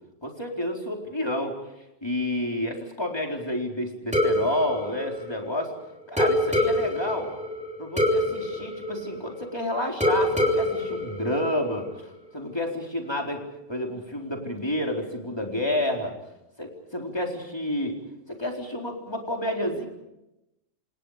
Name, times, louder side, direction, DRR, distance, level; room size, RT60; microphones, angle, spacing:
voice 1, 0.2-1.6 2.0-5.7 6.1-7.3 7.8-13.4 13.7-16.1 16.6-18.0 18.3-19.9, left 1 dB, 20° left, 1 dB, 4.3 m, -30 dB
sound 1, 4.1-5.7 6.2-9.6 10.0-12.0, left 1 dB, 5° right, 4.2 m, -26 dB
28.5 x 27.5 x 5.1 m, 0.90 s
omnidirectional pair, 1.3 m